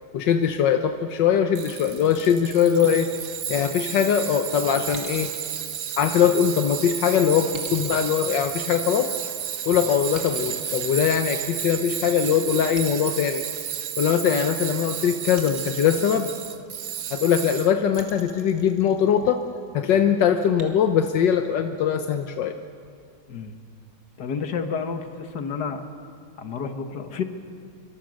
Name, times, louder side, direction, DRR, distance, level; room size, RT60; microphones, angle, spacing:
voice 1, 0.1-3.1 3.5-5.3 6.0-9.1 9.7-13.4 14.0-16.3 17.1-19.4 19.7-22.5, left 8 dB, 85° left, 6 dB, 1.6 m, -21 dB
Tools, 1.6-18.0, right 9 dB, 85° right, 1.8 m, -32 dB
sound 1, 2.7-4.2 4.9-6.8 7.5-9.3 10.1-11.9 12.7-14.4 15.4-16.9 18.0-19.5 20.6-20.7, right 3 dB, 45° right, 2.8 m, -45 dB
voice 2, 23.3-23.6 24.2-25.8 26.4-27.2, left 5 dB, 70° left, 7 dB, 2.0 m, -30 dB
28.0 x 24.0 x 6.4 m, 2.3 s
omnidirectional pair, 1.9 m